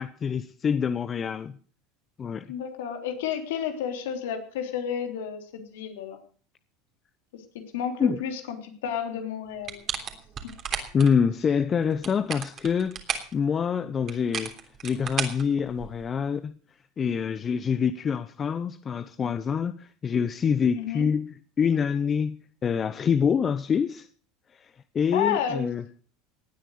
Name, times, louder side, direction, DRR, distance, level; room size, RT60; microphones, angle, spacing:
voice 1, 0.0-1.6 2.2-2.5 8.0-8.2 10.9-13.0 13.3-14.6 14.8-16.5 17.0-22.4 22.6-24.1 24.5-25.8, left 6 dB, 30° left, 0.8 m, -26 dB
voice 2, 2.5-6.2 7.7-9.8 20.7-21.1 25.1-25.7, left 8 dB, 80° left, 3.3 m, -31 dB
sound 1, 9.6-11.1 11.9-13.3 14.1-16.1, right 7 dB, 40° right, 3.3 m, -33 dB
18.5 x 9.1 x 6.5 m
supercardioid pair, 100°, 0 cm